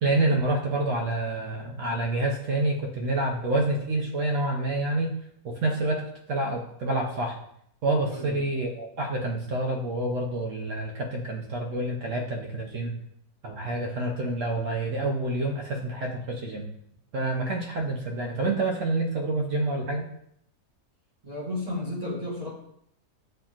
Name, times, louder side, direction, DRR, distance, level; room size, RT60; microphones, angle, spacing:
voice 1, 0.0-5.1 5.4-7.4 7.8-12.9 13.4-16.7 17.1-20.0, right 2 dB, 65° right, 1 dB, 0.9 m, -28 dB
voice 2, 21.2-22.5, left 1 dB, 25° right, -6 dB, 1.2 m, -32 dB
7.7 x 2.8 x 2.4 m, 0.72 s
omnidirectional pair, 1.7 m